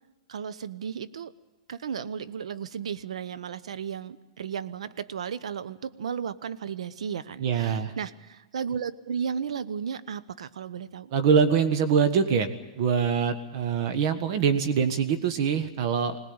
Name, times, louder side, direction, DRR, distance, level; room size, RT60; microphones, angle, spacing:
voice 1, 0.3-1.3 1.7-11.1, right 7 dB, 80° right, 14 dB, 1.0 m, -34 dB
voice 2, 7.4-7.9 11.1-12.5 12.8-16.2, right 6 dB, 50° right, 8 dB, 1.5 m, -24 dB
22.0 x 19.0 x 8.8 m, 1.1 s
hypercardioid pair, 135°, 3 cm